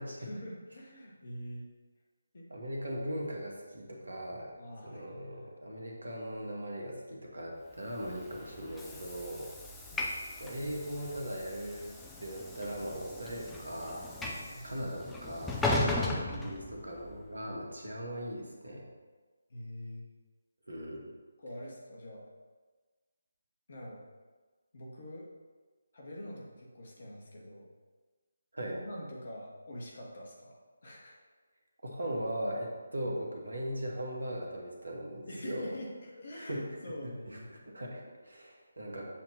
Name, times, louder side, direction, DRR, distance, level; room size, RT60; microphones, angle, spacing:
voice 1, 0.2-1.6 2.3-2.5 4.6-5.6 9.9-10.1 14.2-14.8 16.0-16.8 19.5-20.0 21.4-22.3 23.7-24.0 24.7-25.3 25.9-27.7 28.6-31.1 35.3-37.5, equal, 50° left, -3 dB, 1.6 m, -45 dB
voice 2, 2.5-4.5 4.8-9.5 10.4-11.9 12.2-14.0 14.6-15.7 16.3-18.9 20.7-21.1 28.5-28.8 31.8-35.7 36.3-36.8 37.0-39.0, equal, 70° right, -1 dB, 1.4 m, -39 dB
Train / Sliding door, 7.9-17.2, left 2 dB, 5° left, 0.5 m, -37 dB
7.4 x 3.0 x 5.6 m, 1.3 s
figure-of-eight pair, 150°, 0 cm